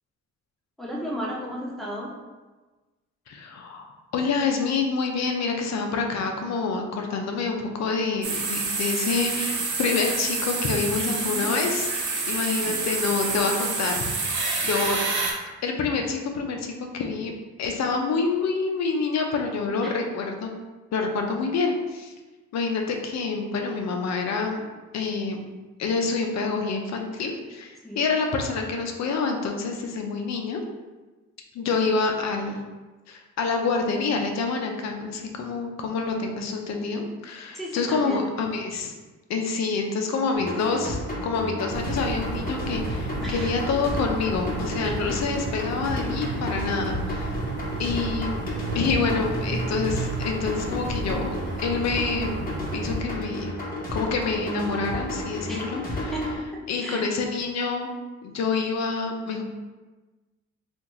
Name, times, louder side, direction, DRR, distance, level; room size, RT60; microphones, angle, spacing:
voice 1, 0.8-2.1 10.9-11.5 14.6-14.7 19.8-19.9 27.8-28.1 37.5-38.2 43.2-43.5 44.8-45.0 55.5-55.6 56.1-57.0, equal, ahead, -5 dB, 0.8 m, -34 dB
voice 2, 3.3-3.9 4.1-15.1 15.6-17.3 17.6-20.5 20.9-22.1 22.5-24.7 24.9-25.5 25.8-30.6 31.5-32.6 33.1-38.9 39.3-47.4 47.8-48.3 48.7-52.4 52.7-53.6 53.9-56.1 56.7-57.9 58.2-59.4, left 4 dB, 60° left, 3 dB, 0.6 m, -27 dB
sound 1, 8.2-15.3, right 3 dB, 75° right, 0.9 m, -28 dB
sound 2, 40.3-56.3, left 1 dB, 30° left, 1.0 m, -32 dB
sound 3, 41.7-53.0, right 4 dB, 35° right, 0.4 m, -33 dB
2.9 x 2.5 x 3.8 m, 1.2 s
cardioid pair, 90°, 30 cm